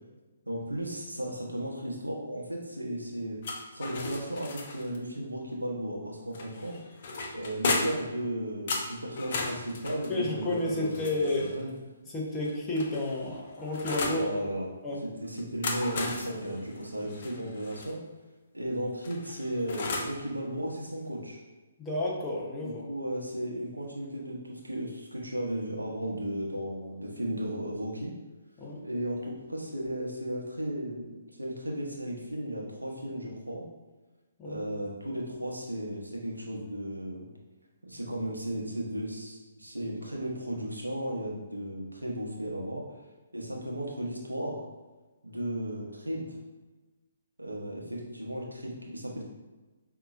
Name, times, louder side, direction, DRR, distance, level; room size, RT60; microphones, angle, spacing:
voice 1, 0.5-3.4 3.7-6.8 7.3-11.7 14.0-14.7 15.2-18.0 18.5-21.4 22.6-28.1 28.8-33.6 34.4-37.3 37.8-42.8 43.3-44.6 45.2-46.3 47.4-49.3, right 1 dB, 90° right, -2 dB, 0.9 m, -35 dB
sound 1, 3.4-5.0 6.3-8.1 8.7-11.6 12.4-14.3 15.4-17.9 19.0-20.2, left 3 dB, 45° left, 0.6 m, -35 dB
voice 2, 10.1-11.5 12.1-14.3 14.8-15.0 21.8-22.8 28.6-28.8 34.4-34.6, left 1 dB, 15° left, -5 dB, 0.9 m, -31 dB
5.2 x 2.8 x 2.4 m, 1.2 s
figure-of-eight pair, 130°, 0 cm